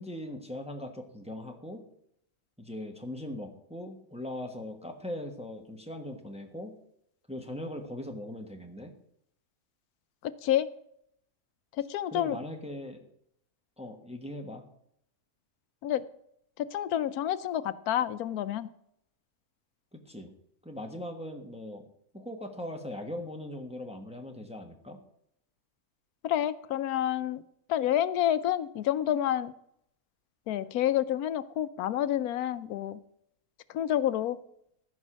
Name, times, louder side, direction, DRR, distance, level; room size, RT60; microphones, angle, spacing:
voice 1, 0.0-1.9 2.6-6.8 7.3-8.9 12.1-13.1 13.8-14.6 19.9-20.3 20.6-21.8 22.1-25.0, left 1 dB, 5° right, 3 dB, 1.1 m, -40 dB
voice 2, 10.2-10.7 11.8-12.4 15.8-16.0 16.6-18.7 26.2-27.4 27.7-29.5 30.5-33.0 33.7-34.4, left 11 dB, 85° left, 14 dB, 1.1 m, -29 dB
14.5 x 5.4 x 6.2 m, 0.73 s
omnidirectional pair, 1.5 m